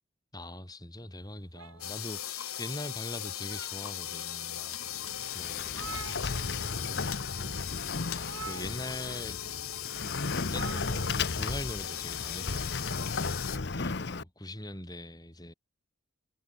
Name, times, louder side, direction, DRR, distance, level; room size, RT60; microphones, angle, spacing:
voice 1, 0.3-6.0 6.8-7.6 8.1-9.4 10.5-15.5, left 1 dB, 20° left, 4.2 m, -42 dB
sound 1, 1.5-2.7 3.2-4.1 4.7-4.8 5.2-5.3 5.4-6.8 7.1-7.3 8.2-9.3 10.5-11.3, right 5 dB, 75° right, 4.2 m, -46 dB
sound 2, 1.8-13.6, left 12 dB, 90° left, 4.0 m, -38 dB
Sliding door, 4.8-14.2, left 4 dB, 50° left, 0.9 m, -35 dB
head